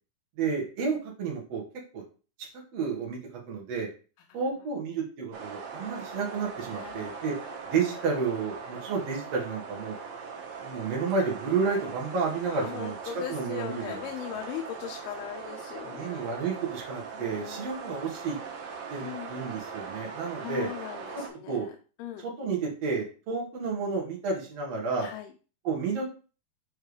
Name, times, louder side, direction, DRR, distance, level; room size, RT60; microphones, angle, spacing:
voice 1, 0.4-1.6 1.9-2.0 2.7-3.2 3.5-3.9 4.3-7.3 7.7-10.0 10.6-13.0 13.3-14.0 14.3-14.4 15.8-18.4 18.9-20.7 21.1-21.2 21.5-21.7 22.2-25.1 25.6-26.0, right 5 dB, 55° right, -2 dB, 2.2 m, -31 dB
sound 1, 5.3-21.3, right 5 dB, 70° right, 2.8 m, -40 dB
voice 2, 6.6-7.4 12.5-16.5 17.1-17.7 19.0-19.3 20.4-21.7 22.0-22.2 25.0-25.3, left 10 dB, 90° left, 3 dB, 2.6 m, -39 dB
6.5 x 4.5 x 3.2 m, 0.37 s
omnidirectional pair, 4.4 m